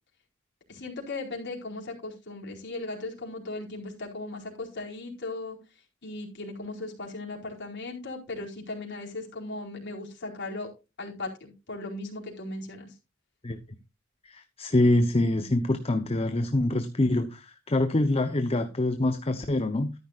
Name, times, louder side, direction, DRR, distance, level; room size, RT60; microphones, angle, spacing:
voice 1, 0.7-5.6 6.0-10.7 11.0-13.0, left 2 dB, 60° left, 4.5 m, -37 dB
voice 2, 14.2-19.9, left 1 dB, 30° left, 0.8 m, -25 dB
13.5 x 11.0 x 2.5 m
head